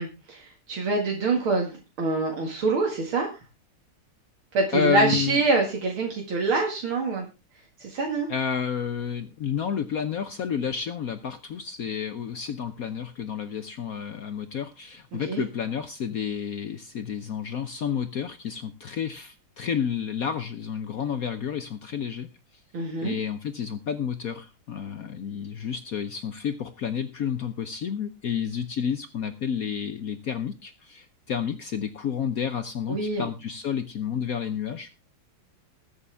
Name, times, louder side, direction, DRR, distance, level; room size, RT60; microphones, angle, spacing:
voice 1, 0.0-3.3 4.5-7.3 7.8-8.3 15.1-15.4 22.7-23.1 32.9-33.3, right 3 dB, 70° right, 1 dB, 2.8 m, -25 dB
voice 2, 4.7-5.4 8.3-22.3 23.0-35.0, left 7 dB, 65° left, 9 dB, 0.9 m, -30 dB
21.0 x 7.0 x 3.4 m, 0.28 s
omnidirectional pair, 2.3 m